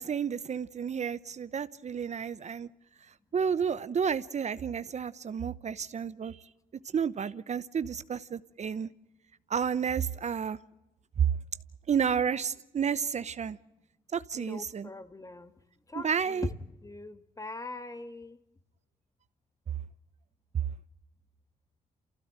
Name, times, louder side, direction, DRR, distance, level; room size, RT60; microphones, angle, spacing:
voice 1, 0.0-2.7 3.3-6.4 6.9-8.9 9.5-10.6 11.2-11.3 11.9-13.6 14.1-14.9 15.9-16.5, right 7 dB, 50° right, 15 dB, 0.9 m, -31 dB
voice 2, 14.3-15.5 15.9-16.5 16.8-18.4, left 2 dB, 20° left, 11 dB, 2.0 m, -40 dB
28.5 x 16.0 x 9.0 m, 0.97 s
cardioid pair, 70°, 15 cm